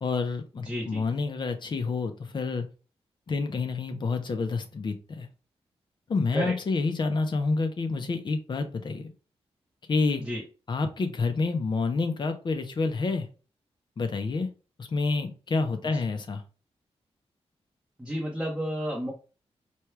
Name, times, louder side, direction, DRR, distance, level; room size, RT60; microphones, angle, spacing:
voice 1, 0.0-2.6 3.3-5.3 6.1-9.1 9.9-10.2 10.7-13.3 14.0-14.5 14.8-16.4, left 4 dB, 45° left, 7 dB, 0.7 m, -28 dB
voice 2, 0.6-1.0 6.3-6.6 10.2-10.4 18.0-19.1, equal, 5° right, -3 dB, 0.8 m, -31 dB
4.4 x 2.3 x 3.2 m, 0.35 s
wide cardioid pair, 125°, 11 cm